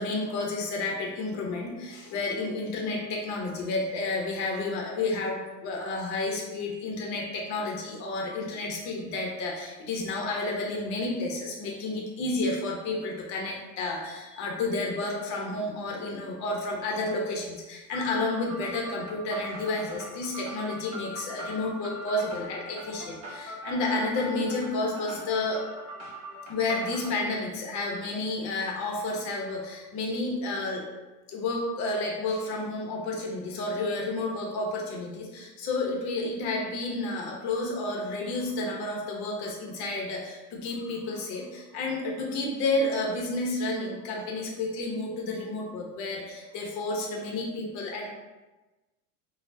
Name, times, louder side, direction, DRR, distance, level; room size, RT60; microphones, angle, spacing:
voice 1, 0.0-25.6 26.5-30.8 31.3-48.1, left 2 dB, 40° left, -1 dB, 0.9 m, -31 dB
sound 1, 17.9-27.1, equal, 35° right, 1.0 m, -41 dB
4.3 x 2.3 x 2.7 m, 1.1 s
supercardioid pair, 130°, 46 cm